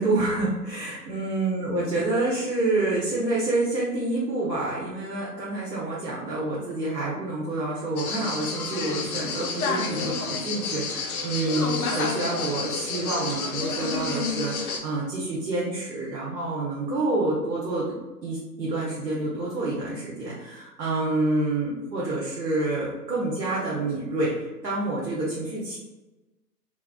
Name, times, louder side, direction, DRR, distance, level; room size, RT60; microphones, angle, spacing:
voice 1, 0.0-17.8 18.2-25.8, right 2 dB, 85° right, -6 dB, 0.9 m, -28 dB
sound 1, 8.0-14.8, left 4 dB, 60° left, 0.6 m, -30 dB
3.3 x 2.0 x 2.3 m, 1.1 s
figure-of-eight pair, 130°, 49 cm